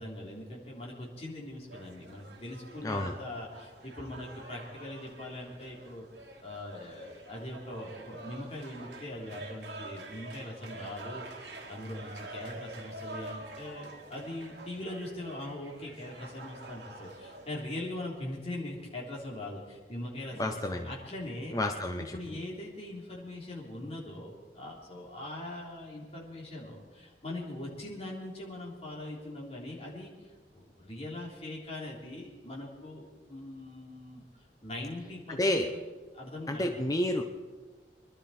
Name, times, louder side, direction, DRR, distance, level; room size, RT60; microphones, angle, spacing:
voice 1, 0.0-6.1 6.4-21.6 22.0-30.1 30.5-35.8 36.1-36.8, left 1 dB, 35° left, -3 dB, 3.6 m, -41 dB
sound 1, 1.7-17.6, right 2 dB, 70° right, 2.2 m, -47 dB
voice 2, 20.4-20.9 21.5-22.0 35.3-35.7 36.5-37.2, left 1 dB, 20° left, 3 dB, 0.8 m, -29 dB
23.5 x 12.0 x 4.4 m, 1.3 s
head